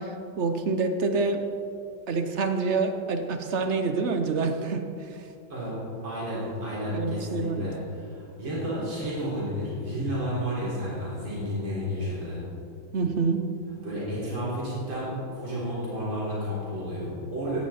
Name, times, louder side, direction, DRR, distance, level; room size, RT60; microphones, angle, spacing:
voice 1, 0.0-1.4 2.1-5.2 6.9-7.6 12.9-13.4, right 4 dB, 60° right, 6 dB, 0.7 m, -27 dB
voice 2, 6.0-12.4 13.8-17.6, equal, 80° right, -7 dB, 4.4 m, -31 dB
16.5 x 9.5 x 4.2 m, 2.5 s
omnidirectional pair, 2.1 m